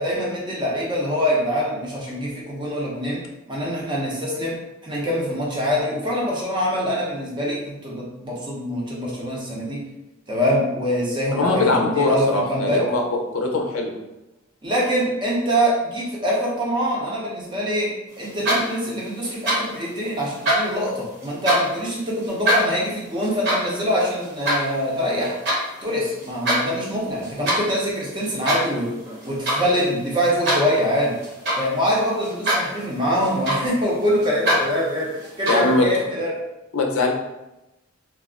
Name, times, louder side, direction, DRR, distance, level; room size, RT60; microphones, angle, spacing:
voice 1, 0.0-4.6 4.8-9.8 10.3-12.8 14.6-25.4 25.8-28.9 29.2-31.2 31.6-35.1 35.4-36.4, equal, 20° right, -4 dB, 0.6 m, -24 dB
voice 2, 11.3-13.0 13.3-14.0 35.5-35.9 36.7-37.1, left 2 dB, 90° left, 1 dB, 0.5 m, -21 dB
sound 1, 18.2-18.9 19.2-19.8 20.2-21.8 22.2-25.6 26.1-26.6 26.9-27.7 28.2-28.8 29.1-29.7 30.0-31.8 32.2-32.8 33.0-33.9 34.2-34.6 35.2-35.8, equal, 55° right, 1.0 m, -23 dB
2.4 x 2.0 x 3.6 m, 0.96 s
head